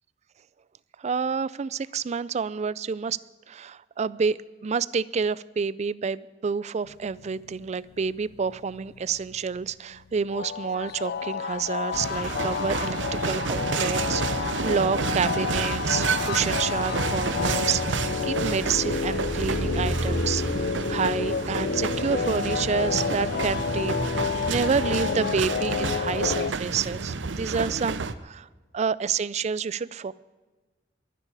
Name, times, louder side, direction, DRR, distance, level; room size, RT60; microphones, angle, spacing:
voice 1, 1.0-3.2 3.5-13.0 13.2-28.5 28.7-30.1, right 6 dB, 35° right, 19 dB, 0.4 m, -29 dB
sound 1, 6.9-8.0 8.3-9.6 10.0-10.1 10.3-26.5, left 6 dB, 55° left, 0.3 m, -30 dB
sound 2, 11.9-28.1, right 4 dB, 75° right, 0.7 m, -30 dB
sound 3, 16.7-25.2, right 1 dB, 35° left, 5.9 m, -35 dB
22.0 x 9.8 x 4.8 m, 1.3 s
head